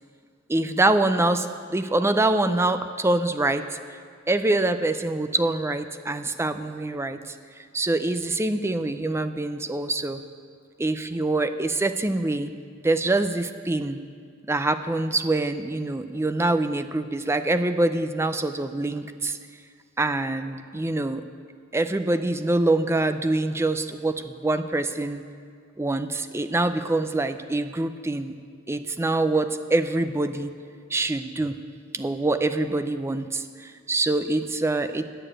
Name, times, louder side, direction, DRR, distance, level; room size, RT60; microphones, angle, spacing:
voice 1, 0.5-3.8 4.3-7.3 7.7-10.2 10.8-12.5 12.8-14.0 14.5-19.4 20.0-21.2 21.7-25.2 25.8-28.3 28.7-30.5 30.9-31.6 31.9-35.0, right 2 dB, 15° right, 10 dB, 0.4 m, -25 dB
10.0 x 6.8 x 8.7 m, 2.1 s
head